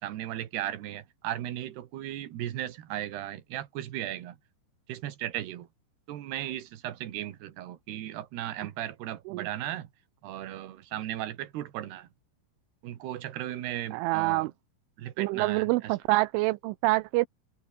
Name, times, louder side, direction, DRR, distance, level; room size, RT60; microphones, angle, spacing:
voice 1, 0.0-4.4 4.9-5.7 6.1-9.9 10.2-12.1 12.8-14.5 15.0-15.9, right 12 dB, 60° right, 3.4 m, -36 dB
voice 2, 13.9-14.5 15.2-17.3, right 21 dB, 85° right, 3.0 m, -26 dB
omnidirectional pair, 5.8 m